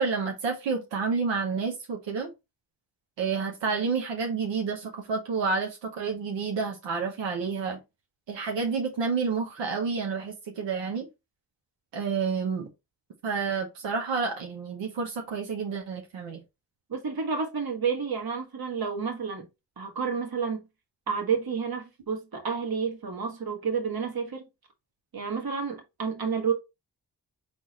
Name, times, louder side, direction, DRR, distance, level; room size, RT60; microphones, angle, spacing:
voice 1, 0.0-2.3 3.2-7.8 8.3-11.1 11.9-12.7 13.2-16.4, right 5 dB, 90° right, 1.0 m, -29 dB
voice 2, 16.9-19.5 19.8-20.6 21.1-24.5 25.1-26.5, right 6 dB, 55° right, 1.5 m, -30 dB
4.0 x 3.5 x 3.0 m
cardioid pair, 65°, 42 cm